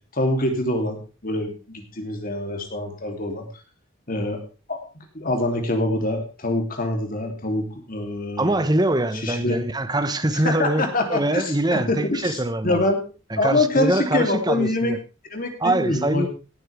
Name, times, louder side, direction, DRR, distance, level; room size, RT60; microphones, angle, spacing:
voice 1, 0.1-3.5 4.1-4.4 4.7-8.6 9.1-9.6 10.3-13.0 13.4-14.9 15.3-16.3, left 2 dB, 40° left, 4 dB, 3.0 m, -25 dB
voice 2, 8.4-12.8 13.3-15.0 15.6-16.3, right 1 dB, 20° right, 11 dB, 1.1 m, -23 dB
18.5 x 8.9 x 3.4 m, 0.33 s
head